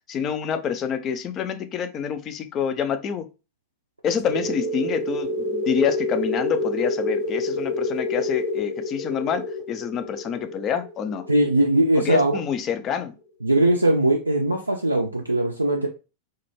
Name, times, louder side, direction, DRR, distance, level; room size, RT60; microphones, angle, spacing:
voice 1, 0.1-3.3 4.0-11.3 12.0-13.1, left 8 dB, 30° left, 9 dB, 0.3 m, -27 dB
sound 1, 4.2-12.6, left 2 dB, 75° left, 1.0 m, -28 dB
voice 2, 11.3-12.4 13.4-15.9, right 1 dB, 85° right, 0 dB, 0.3 m, -20 dB
2.2 x 2.0 x 3.1 m, 0.30 s
figure-of-eight pair, 90°, 0 cm